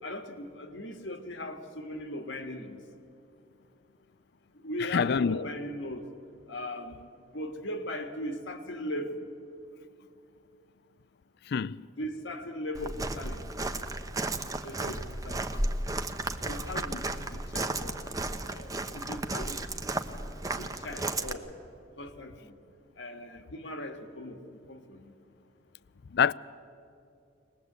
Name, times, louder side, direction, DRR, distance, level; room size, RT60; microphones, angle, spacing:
voice 1, 0.0-2.8 4.5-6.1 6.5-9.3 12.0-13.5 14.6-15.5 16.5-18.0 18.5-19.8 20.6-21.5 22.0-22.6 23.0-25.2, left 1 dB, 80° left, 1.8 m, -39 dB
voice 2, 4.9-5.4 11.5-11.8 26.1-26.3, left 6 dB, 60° left, 0.4 m, -25 dB
Walk footsteps, 12.7-21.3, right 2 dB, 20° right, 0.9 m, -34 dB
22.5 x 20.0 x 8.1 m
head